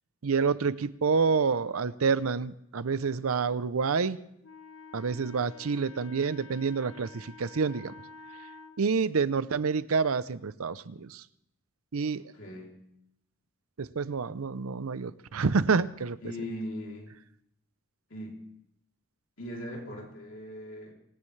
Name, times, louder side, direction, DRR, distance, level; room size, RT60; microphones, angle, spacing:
voice 1, 0.2-4.2 4.9-7.9 8.8-11.2 11.9-12.2 13.8-16.2, right 5 dB, 85° right, 16 dB, 0.6 m, -28 dB
Wind instrument woodwind instrument, 4.4-8.8, left 4 dB, 90° left, 1.0 m, -49 dB
voice 2, 12.3-12.7 16.2-17.1 18.1-18.4 19.4-20.9, left 1 dB, 65° left, -2 dB, 3.3 m, -39 dB
25.5 x 16.0 x 3.3 m, 0.78 s
head